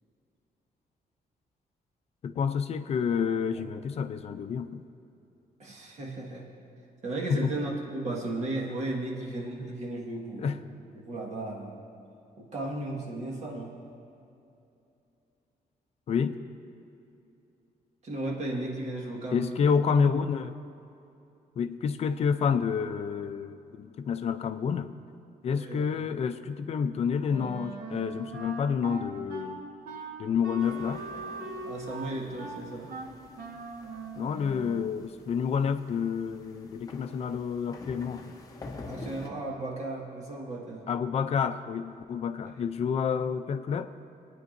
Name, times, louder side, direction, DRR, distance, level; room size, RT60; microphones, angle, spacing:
voice 1, 2.2-4.8 7.3-7.5 10.4-10.6 16.1-16.4 19.3-20.5 21.6-24.9 25.4-29.6 30.2-31.0 34.2-38.4 40.9-43.9, left 6 dB, 45° left, 10 dB, 0.4 m, -29 dB
voice 2, 5.6-6.5 7.0-10.6 10.9-11.8 12.4-13.8 18.0-19.6 25.5-25.9 31.6-32.9 38.9-40.9, right 2 dB, 45° right, -2 dB, 1.6 m, -35 dB
Wind instrument woodwind instrument, 27.3-34.9, right 3 dB, 80° right, 1.4 m, -40 dB
sound 1, 30.6-39.3, left 3 dB, 25° left, 0.8 m, -48 dB
25.5 x 9.3 x 2.6 m, 2.7 s
wide cardioid pair, 175°, 15 cm